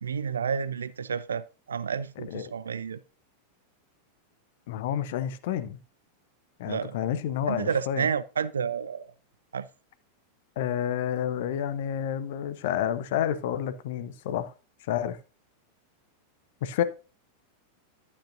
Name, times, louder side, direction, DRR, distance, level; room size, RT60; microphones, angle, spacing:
voice 1, 0.0-3.0 6.7-7.0 7.5-9.1 9.5-9.7, right 6 dB, 70° right, 0.4 m, -30 dB
voice 2, 4.7-5.8 6.6-8.1 10.6-14.5 14.9-15.2 16.6-16.8, left 10 dB, 55° left, 0.7 m, -29 dB
11.5 x 8.4 x 2.7 m
figure-of-eight pair, 90°, 0 cm